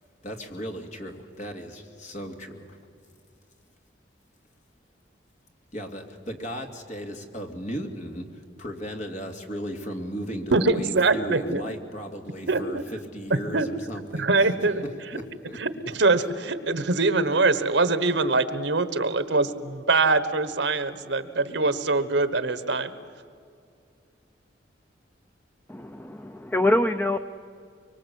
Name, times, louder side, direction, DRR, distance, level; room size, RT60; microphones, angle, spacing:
voice 1, 0.2-2.6 5.7-8.2 8.6-14.5 15.1-15.6, equal, 40° left, 3 dB, 2.5 m, -36 dB
voice 2, 10.5-11.6 12.5-12.6 13.5-13.7 14.1-14.8 15.5-22.9, right 3 dB, 75° right, 13 dB, 1.3 m, -23 dB
voice 3, 25.7-27.2, left 1 dB, 10° left, 9 dB, 0.6 m, -24 dB
24.5 x 24.0 x 8.3 m, 2.2 s
head